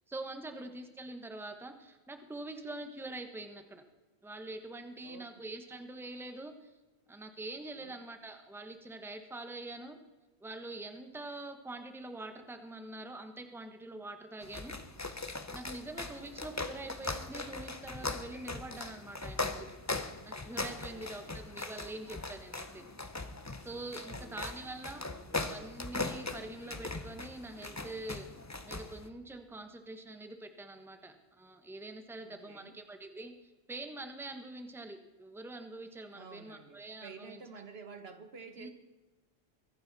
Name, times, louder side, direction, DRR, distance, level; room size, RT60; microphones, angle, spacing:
voice 1, 0.1-3.8 4.2-6.7 7.1-10.0 10.4-14.8 15.5-19.7 20.2-22.9 23.6-25.1 25.3-28.3 28.7-37.4 38.6-38.7, right 2 dB, ahead, 7 dB, 1.1 m, -45 dB
voice 2, 5.0-5.3 7.8-8.0 15.9-16.5 20.9-21.4 24.1-24.7 25.1-25.5 32.2-32.8 36.1-38.7, right 5 dB, 70° right, 8 dB, 1.5 m, -52 dB
sound 1, 14.4-29.1, left 3 dB, 20° left, 0.7 m, -40 dB
23.0 x 10.5 x 4.1 m, 1.2 s
omnidirectional pair, 1.1 m